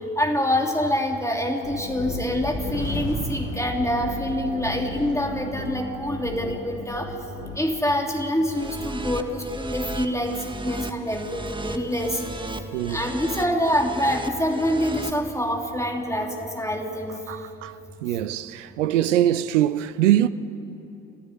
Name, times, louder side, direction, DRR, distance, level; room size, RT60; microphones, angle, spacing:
voice 1, 0.2-7.1 7.6-12.2 12.9-17.2, equal, 10° left, 3.0 m, -26 dB
sound 1, 1.6-7.6, left 3 dB, 90° left, 1.2 m, -36 dB
sound 2, 1.9-4.6, equal, 45° left, 5.6 m, -33 dB
sound 3, 8.5-15.1, right 2 dB, 15° right, 1.9 m, -35 dB
voice 2, 12.7-13.1 17.3-20.3, right 12 dB, 80° right, 0.7 m, -23 dB
28.0 x 15.5 x 9.7 m
figure-of-eight pair, 40°, 36 cm